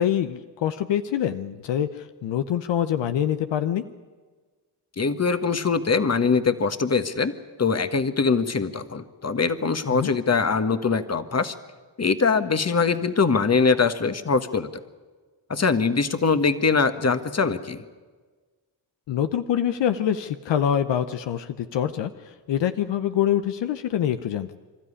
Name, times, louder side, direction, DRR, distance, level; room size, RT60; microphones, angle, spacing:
voice 1, 0.0-3.8 9.9-10.1 19.1-24.6, left 10 dB, 80° left, 9 dB, 0.8 m, -25 dB
voice 2, 5.0-7.3 7.6-11.5 12.0-14.7 15.5-17.8, left 4 dB, 35° left, 11 dB, 1.5 m, -22 dB
25.5 x 13.0 x 9.9 m, 1.4 s
supercardioid pair, 50°, 43 cm